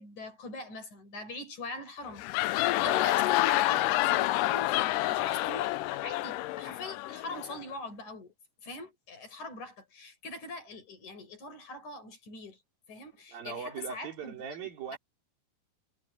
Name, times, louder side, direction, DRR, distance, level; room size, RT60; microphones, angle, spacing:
voice 1, 0.0-8.3 8.6-12.6 12.9-14.3 14.9-15.0, left 2 dB, 50° left, 6.8 m, -43 dB
sound 1, 2.1-7.6, left 17 dB, 85° left, 2.0 m, -28 dB
voice 2, 2.8-3.2 13.3-15.0, right 6 dB, 70° right, 5.7 m, -40 dB
omnidirectional pair, 4.4 m